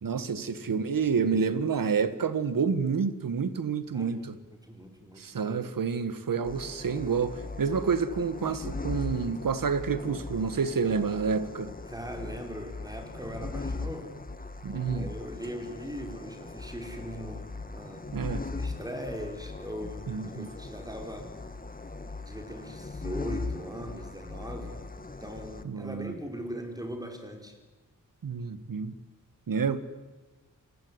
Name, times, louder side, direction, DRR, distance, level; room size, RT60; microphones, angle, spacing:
voice 1, 0.0-4.3 5.2-11.7 14.6-15.1 18.1-18.4 20.1-20.5 25.6-26.1 28.2-28.9 29.5-29.8, right 5 dB, 80° right, 1.7 m, -29 dB
voice 2, 3.9-5.5 11.9-14.2 14.9-18.1 18.5-21.3 22.2-24.8 25.2-27.6, equal, 10° right, 5.0 m, -40 dB
sound 1, 6.4-25.6, left 3 dB, 25° left, 1.7 m, -39 dB
28.0 x 20.0 x 9.7 m
wide cardioid pair, 105°, 33 cm